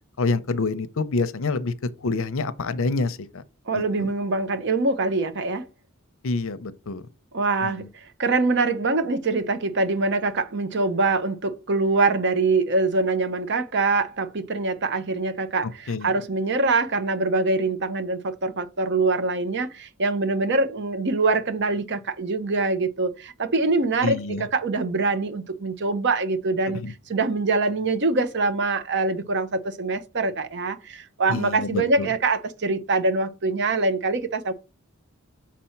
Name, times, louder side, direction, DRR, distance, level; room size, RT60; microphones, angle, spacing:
voice 1, 0.2-1.7 2.0-3.4 3.7-4.1 6.2-7.0 7.6-7.9 15.9-16.1 24.0-24.4 26.7-26.9 31.3-32.1, left 3 dB, 65° left, 0.7 m, -27 dB
voice 2, 3.7-5.7 7.3-34.5, right 3 dB, 55° right, 0.8 m, -24 dB
6.1 x 4.3 x 5.7 m
head